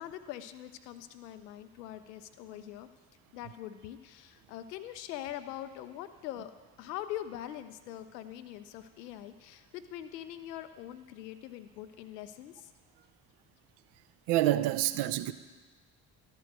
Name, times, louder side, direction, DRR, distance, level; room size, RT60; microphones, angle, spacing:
voice 1, 0.0-2.9 3.3-6.5 6.8-12.7, left 12 dB, 80° left, 11 dB, 0.6 m, -43 dB
voice 2, 14.3-15.3, right 14 dB, 60° right, 13 dB, 0.6 m, -27 dB
12.5 x 4.6 x 6.5 m, 1.3 s
figure-of-eight pair, 45°, 48 cm